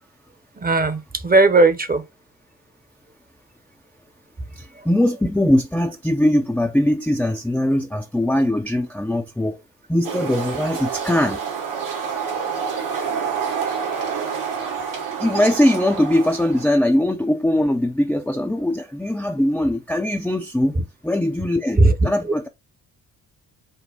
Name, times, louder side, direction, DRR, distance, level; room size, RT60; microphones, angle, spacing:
voice 1, 0.6-2.0 4.8-4.9 20.8-20.9 21.8-21.9, right 2 dB, 20° right, 0.8 m, -17 dB
voice 2, 4.6-9.6 9.9-11.4 15.2-22.5, left 1 dB, 5° left, 0.5 m, -21 dB
sound 1, 10.0-16.7, right 6 dB, 80° right, 2.5 m, -28 dB
5.4 x 2.1 x 3.8 m
hypercardioid pair, 40°, 46 cm